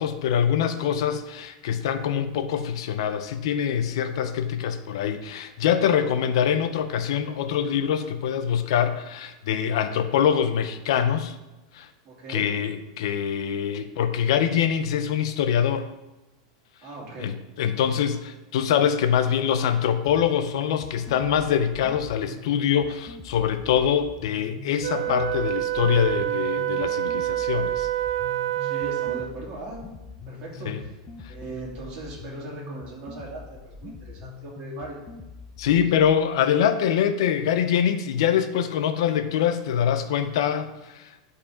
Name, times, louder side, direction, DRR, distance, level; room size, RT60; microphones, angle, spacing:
voice 1, 0.0-11.4 11.7-11.9 12.3-15.9 17.2-27.9 30.7-30.8 31.2-31.3 35.6-41.1, left 8 dB, 70° left, 10 dB, 0.6 m, -24 dB
voice 2, 12.0-12.4 16.8-17.3 28.6-29.8 30.3-30.9 31.3-35.0, right 2 dB, 35° right, -4 dB, 2.6 m, -38 dB
sound 1, 20.1-36.1, left 3 dB, 20° left, 0.7 m, -43 dB
Wind instrument woodwind instrument, 24.8-29.4, right 13 dB, 90° right, 0.4 m, -27 dB
11.5 x 4.2 x 3.8 m, 1.0 s
supercardioid pair, 145°, 3 cm